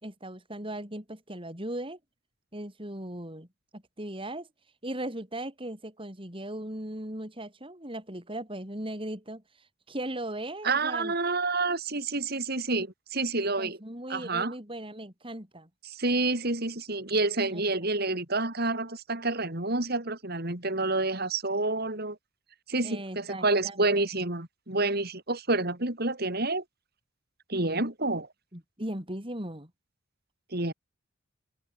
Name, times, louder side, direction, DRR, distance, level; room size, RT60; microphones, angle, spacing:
voice 1, 0.0-2.0 2.5-3.5 3.7-4.5 4.8-9.4 9.9-11.1 13.6-15.7 17.5-17.6 22.8-23.8 28.5-29.7, right 1 dB, 25° right, 6.1 m, -38 dB
voice 2, 10.6-13.8 14.1-14.5 15.8-22.2 22.7-26.6 27.5-28.3 30.5-30.7, right 2 dB, 50° right, 4.2 m, -28 dB
head